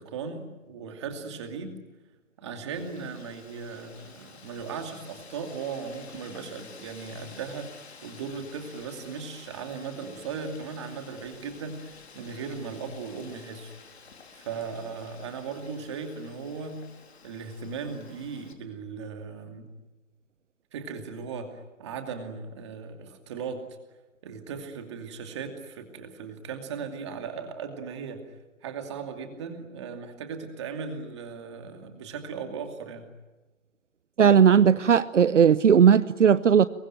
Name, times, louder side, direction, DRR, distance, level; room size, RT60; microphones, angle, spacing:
voice 1, 0.0-1.7 2.4-13.7 14.3-16.8 17.2-19.7 20.7-23.6 24.2-33.1, right 5 dB, 20° right, 5 dB, 2.5 m, -37 dB
Wind, 2.7-18.5, left 5 dB, 50° left, 4.0 m, -51 dB
voice 2, 34.2-36.7, right 7 dB, 60° right, 15 dB, 0.8 m, -17 dB
26.5 x 23.0 x 9.2 m, 1.1 s
hypercardioid pair, 170°, 40 cm